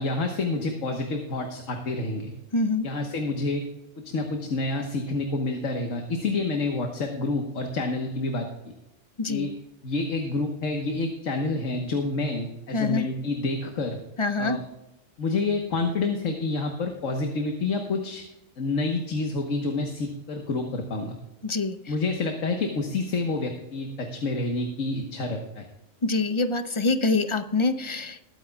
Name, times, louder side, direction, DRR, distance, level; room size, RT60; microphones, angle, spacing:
voice 1, 0.0-2.3 2.8-3.7 4.0-8.7 9.3-9.5 9.8-14.0 14.4-14.6 15.2-18.2 18.6-21.2 21.9-25.6, left 3 dB, 90° left, 3 dB, 1.6 m, -28 dB
voice 2, 2.5-2.9 9.2-9.5 12.7-13.0 14.2-14.6 21.4-21.8 26.0-28.2, left 3 dB, 35° left, 10 dB, 0.5 m, -25 dB
21.0 x 9.3 x 2.4 m, 0.93 s
omnidirectional pair, 1.3 m